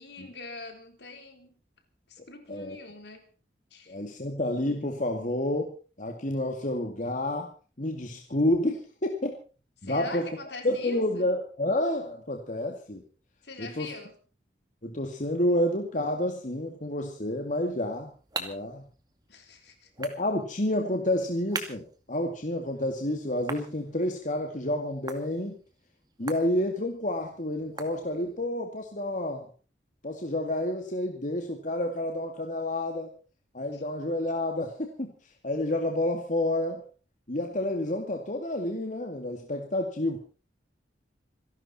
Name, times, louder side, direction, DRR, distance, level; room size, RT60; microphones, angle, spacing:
voice 1, 0.0-1.5 2.1-3.3 3.7-4.3 9.8-11.3 13.4-14.2 19.3-19.9 33.7-33.8, left 3 dB, 65° left, 3.9 m, -43 dB
voice 2, 3.9-7.5 7.8-9.4 9.8-10.3 10.6-13.0 13.6-13.9 14.8-18.1 18.4-18.8 20.0-25.6 26.2-29.5 30.0-33.1 33.5-35.1 35.4-36.8 37.3-40.2, left 1 dB, 45° left, 2.3 m, -29 dB
sound 1, 17.6-28.5, right 3 dB, 25° right, 2.3 m, -44 dB
27.0 x 12.0 x 4.3 m
head